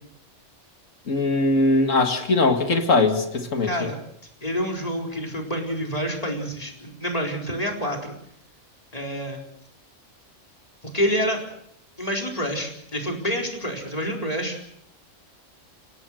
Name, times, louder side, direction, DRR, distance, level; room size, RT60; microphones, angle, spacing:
voice 1, 1.1-3.7, left 2 dB, 90° left, 5 dB, 2.5 m, -20 dB
voice 2, 3.6-4.0 4.4-8.1 8.9-9.4 10.9-11.4 12.0-14.6, equal, 30° left, 1 dB, 4.4 m, -27 dB
27.0 x 18.5 x 6.4 m, 0.72 s
omnidirectional pair, 1.3 m